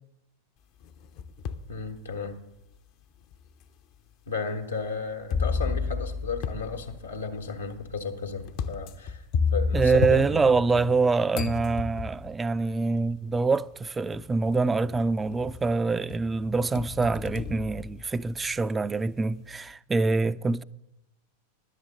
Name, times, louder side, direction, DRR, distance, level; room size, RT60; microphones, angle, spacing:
sound 1, 0.8-1.7 2.3-2.4 3.3-3.4 5.3-11.0 11.3-12.4 13.5-13.6 14.1-14.6 14.9-15.7 16.1-18.5, left 5 dB, 40° left, 0.6 m, -31 dB
voice 1, 1.7-2.4 4.3-10.8 11.3-11.5, left 5 dB, 75° left, 1.2 m, -34 dB
voice 2, 9.7-20.6, right 4 dB, 15° right, 0.3 m, -25 dB
11.0 x 8.3 x 7.6 m
figure-of-eight pair, 90°, 0 cm